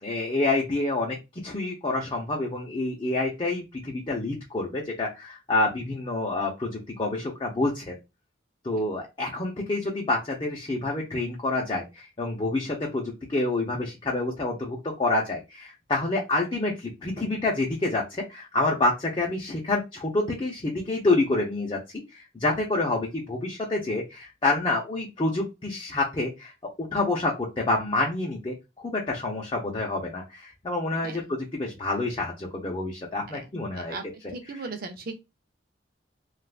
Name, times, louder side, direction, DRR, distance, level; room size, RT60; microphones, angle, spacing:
voice 1, 0.0-1.2 1.4-8.0 8.6-21.8 22.1-26.5 26.8-34.0, left 2 dB, 30° left, 0.6 m, -28 dB
voice 2, 34.3-35.1, right 3 dB, 55° right, 0.7 m, -37 dB
3.5 x 2.4 x 2.4 m
head